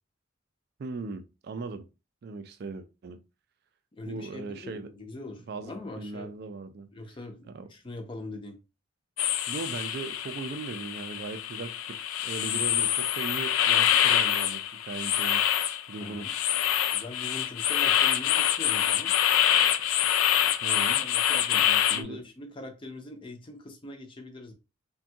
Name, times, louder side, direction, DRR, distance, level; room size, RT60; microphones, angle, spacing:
voice 1, 0.8-1.9 2.2-3.2 4.0-4.9 5.5-5.7 6.0-6.9 7.5-7.7 9.5-15.4 15.9-16.3 20.6-21.0 21.6-22.2, right 4 dB, 50° right, 0.3 m, -38 dB
voice 2, 3.9-6.3 6.9-8.6 16.0-16.3 16.9-19.1 20.8-21.7 21.9-24.5, left 2 dB, 25° left, 0.5 m, -42 dB
sound 1, 9.2-22.0, left 11 dB, 90° left, 0.3 m, -26 dB
3.4 x 2.2 x 2.6 m
head